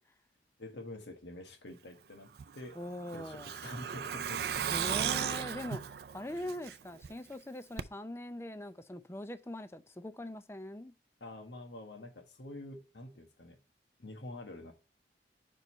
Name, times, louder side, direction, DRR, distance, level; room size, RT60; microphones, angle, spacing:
voice 1, 0.6-2.8 3.1-4.7 5.3-5.4 6.3-6.4 11.2-13.6 14.0-14.7, left 1 dB, 85° left, 1.4 m, -47 dB
Truck, 2.4-7.1 7.4-7.5 7.8-7.9, right 8 dB, 60° right, 0.4 m, -36 dB
voice 2, 2.8-3.5 4.7-10.9, left 1 dB, 15° left, 0.4 m, -42 dB
5.3 x 4.6 x 5.4 m
head